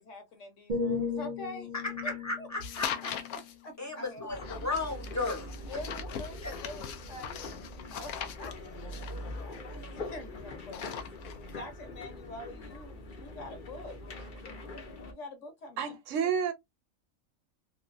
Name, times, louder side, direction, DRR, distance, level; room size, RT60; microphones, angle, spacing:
voice 1, 0.0-1.7 2.0-2.1 2.4-2.5 3.3-4.4 5.7-7.5 7.9-11.0 11.5-14.0 15.1-16.0, left 2 dB, 65° left, 1.2 m, -45 dB
sound 1, 0.7-4.6 5.1-5.4, left 4 dB, 45° right, 0.6 m, -37 dB
voice 2, 1.7-3.1 3.8-5.8 6.4-6.5, left 2 dB, 15° left, 0.8 m, -35 dB
sound 2, 2.6-3.5 4.4-10.2 10.6-11.5, left 8 dB, 90° left, 1.0 m, -40 dB
sound 3, 4.3-15.1, left 1 dB, 45° left, 0.7 m, -43 dB
voice 3, 15.8-16.5, right 7 dB, 70° right, 0.9 m, -29 dB
3.0 x 2.3 x 2.6 m
omnidirectional pair, 1.4 m